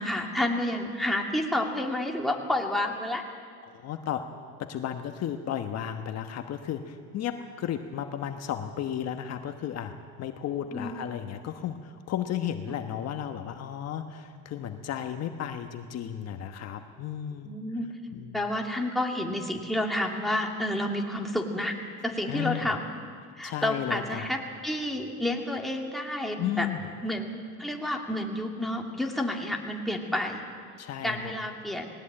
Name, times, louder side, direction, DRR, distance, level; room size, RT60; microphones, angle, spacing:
voice 1, 0.0-3.2 10.7-11.0 12.7-12.8 17.4-17.9 18.3-21.7 22.0-22.9 23.4-26.7 27.0-30.4 31.0-31.9, left 1 dB, ahead, 0 dB, 2.5 m, -30 dB
voice 2, 3.6-4.3 4.6-9.9 10.2-17.5 18.1-18.4 22.3-22.7 23.4-24.3 26.4-26.8 30.8-31.3, left 10 dB, 50° left, 6 dB, 1.2 m, -34 dB
19.5 x 18.5 x 8.8 m, 2.1 s
cardioid pair, 125°, 34 cm